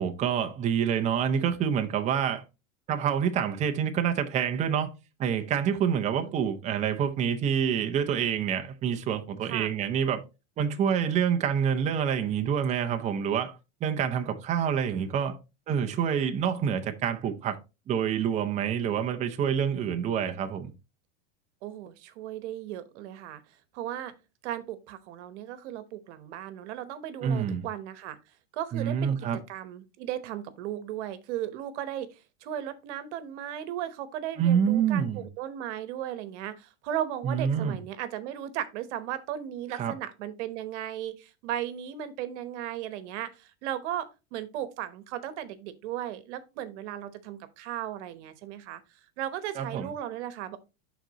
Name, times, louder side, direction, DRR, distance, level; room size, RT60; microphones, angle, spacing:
voice 1, 0.0-2.4 2.9-4.9 5.2-10.2 10.6-15.4 15.7-17.6 17.9-20.7 27.2-27.6 28.7-29.4 34.4-35.2 37.2-37.8 39.7-39.9 49.6-49.9, right 8 dB, 20° right, 0.6 m, -27 dB
voice 2, 21.6-23.4 23.7-24.1 24.4-28.2 28.5-48.8 49.2-50.6, right 11 dB, 60° right, 1.1 m, -36 dB
11.0 x 4.0 x 2.9 m
supercardioid pair, 140°, 40 cm